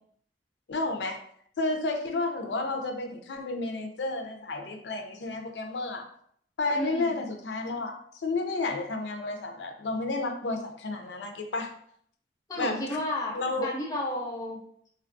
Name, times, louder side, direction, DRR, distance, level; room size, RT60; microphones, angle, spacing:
voice 1, 0.7-1.2 1.6-6.0 6.6-7.9 8.2-11.7 12.6-12.8 13.3-13.7, left 2 dB, 80° left, 5 dB, 0.4 m, -31 dB
voice 2, 6.7-7.1 12.5-13.4 13.6-14.6, left 1 dB, 20° left, -2 dB, 0.5 m, -32 dB
3.2 x 2.3 x 2.5 m, 0.65 s
head